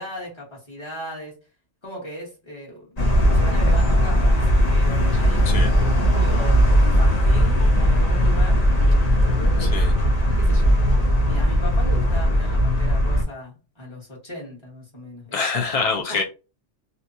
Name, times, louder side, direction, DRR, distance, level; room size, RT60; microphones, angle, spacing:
voice 1, 0.0-1.3 1.8-3.0 3.3-8.6 9.1-10.1 10.4-10.8 11.2-15.6 16.1-16.2, left 1 dB, 25° left, 1.2 m, -37 dB
sound 1, 3.0-13.2, equal, 40° left, 0.7 m, -18 dB
voice 2, 9.6-9.9 15.3-16.2, left 4 dB, 70° left, 0.3 m, -25 dB
2.9 x 2.2 x 2.6 m
omnidirectional pair, 1.3 m